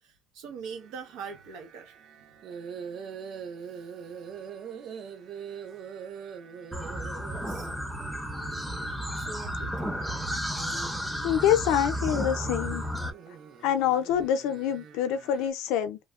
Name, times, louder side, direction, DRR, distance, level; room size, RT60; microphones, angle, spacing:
voice 1, 0.0-2.0 3.7-3.9 7.3-7.7 9.1-10.0, right 5 dB, 90° right, 0.9 m, -43 dB
sound 1, 0.6-15.5, right 6 dB, 50° right, 0.5 m, -44 dB
sound 2, 6.7-13.1, equal, ahead, 0.5 m, -33 dB
voice 2, 11.2-12.8 13.6-16.0, left 10 dB, 85° left, 0.5 m, -26 dB
3.1 x 2.1 x 2.4 m
cardioid pair, 140°, 0 cm